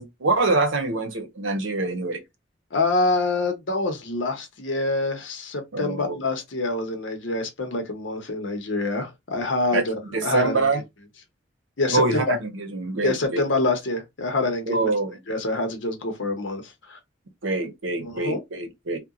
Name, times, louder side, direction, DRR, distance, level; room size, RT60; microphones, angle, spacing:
voice 1, 0.0-2.2 5.7-6.2 9.7-9.8 10.1-10.8 11.9-13.4 14.7-15.2 17.4-19.0, right 3 dB, 85° right, 0.8 m, -25 dB
voice 2, 2.7-10.7 11.8-12.4 13.0-14.9 15.3-17.0 18.0-18.4, left 2 dB, 75° left, 0.8 m, -26 dB
2.8 x 2.2 x 2.4 m
head